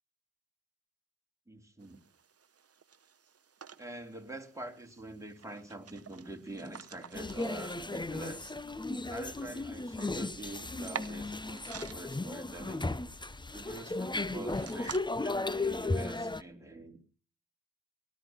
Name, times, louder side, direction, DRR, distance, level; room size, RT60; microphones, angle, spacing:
voice 1, 1.5-2.0 3.8-8.5 9.1-12.9 13.5-17.0, right 2 dB, 10° right, 3 dB, 3.2 m, -45 dB
sound 1, 1.8-15.0, right 6 dB, 40° right, 1.0 m, -50 dB
sound 2, 7.1-16.4, left 2 dB, 10° left, 0.9 m, -35 dB
19.0 x 12.5 x 5.9 m, 0.43 s
supercardioid pair, 45°, 37 cm